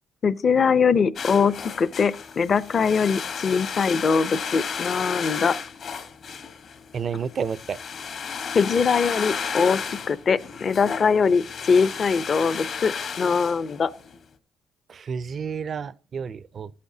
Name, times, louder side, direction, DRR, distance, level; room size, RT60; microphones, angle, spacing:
voice 1, 0.2-1.5 1.8-5.5 8.5-13.9, left 5 dB, 45° left, 0.5 m, -22 dB
sound 1, 1.2-14.2, left 6 dB, 65° left, 1.2 m, -33 dB
voice 2, 6.9-7.8 14.9-16.7, right 6 dB, 50° right, 0.4 m, -30 dB
14.5 x 8.5 x 2.7 m
cardioid pair, 90°, 0 cm